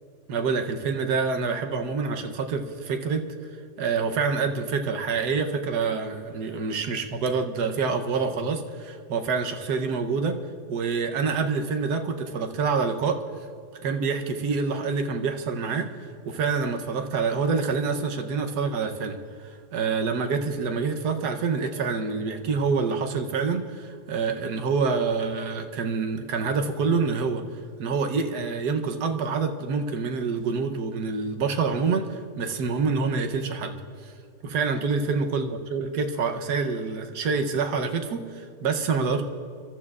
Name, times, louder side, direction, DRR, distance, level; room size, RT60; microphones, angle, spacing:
voice 1, 0.3-3.2 3.8-10.4 10.7-13.2 13.8-19.2 19.7-27.4 27.8-33.8 34.0-34.1 34.4-39.2, right 5 dB, 85° right, 5 dB, 1.5 m, -26 dB
28.5 x 13.5 x 2.4 m, 2.5 s
omnidirectional pair, 1.7 m